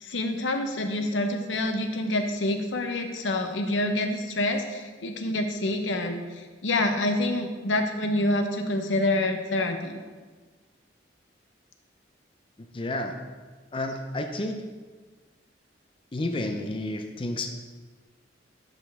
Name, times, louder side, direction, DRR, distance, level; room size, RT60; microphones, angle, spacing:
voice 1, 0.0-6.2 6.6-10.0, left 1 dB, 85° left, 5 dB, 0.8 m, -27 dB
voice 2, 12.7-13.1 13.7-14.6 16.1-17.5, left 2 dB, 30° left, 4 dB, 0.5 m, -30 dB
11.0 x 5.3 x 3.5 m, 1.4 s
head